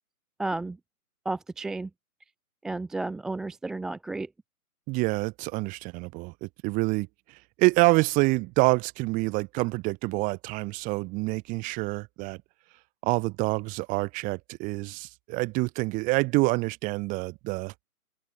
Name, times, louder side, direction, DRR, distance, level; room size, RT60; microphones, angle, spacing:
voice 1, 0.4-0.8 1.2-1.9 2.6-4.3, right 2 dB, ahead, 0.7 m, -32 dB
voice 2, 4.9-7.1 7.6-12.4 13.0-17.7, right 25 dB, 15° right, 3.1 m, -27 dB
open air
hypercardioid pair, 155°, 45 cm